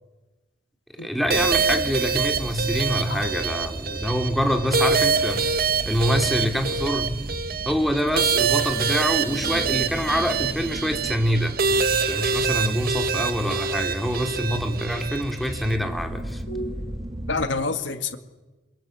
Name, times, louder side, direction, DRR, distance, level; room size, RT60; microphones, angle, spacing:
voice 1, 1.0-5.5 5.8-7.2 7.6-16.4, equal, ahead, 4 dB, 2.8 m, -25 dB
sound 1, 1.3-17.5, right 1 dB, 30° right, 1.2 m, -36 dB
sound 2, 1.3-15.8, right 5 dB, 55° right, 1.6 m, -25 dB
voice 2, 17.3-18.2, left 3 dB, 90° left, 7 dB, 2.0 m, -28 dB
29.0 x 23.5 x 7.9 m, 1.2 s
head